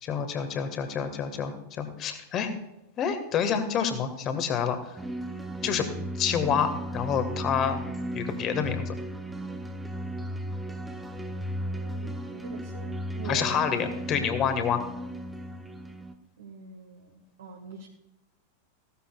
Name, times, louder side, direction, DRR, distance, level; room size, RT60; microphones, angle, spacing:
voice 1, 0.0-2.5 3.0-5.0 5.6-5.9 6.1-7.8 8.1-8.9 13.2-14.8, left 7 dB, 30° left, 8 dB, 1.6 m, -28 dB
sound 1, 5.0-16.1, equal, 5° right, 1.0 m, -35 dB
voice 2, 11.6-13.7 16.4-17.9, right 5 dB, 65° right, 0 dB, 1.4 m, -43 dB
16.0 x 13.0 x 2.4 m, 0.89 s
figure-of-eight pair, 90°, 0 cm